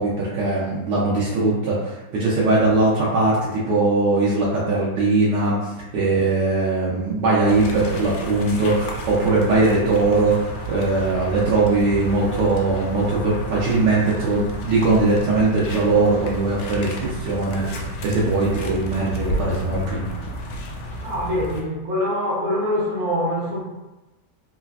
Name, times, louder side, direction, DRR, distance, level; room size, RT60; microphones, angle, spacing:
voice 1, 0.0-20.1, right 3 dB, 80° right, -7 dB, 1.2 m, -20 dB
sound 1, 7.5-21.6, equal, 80° left, 1.2 m, -31 dB
voice 2, 21.0-23.6, left 1 dB, 65° right, -6 dB, 1.3 m, -24 dB
3.3 x 2.3 x 2.3 m, 1.0 s
omnidirectional pair, 1.9 m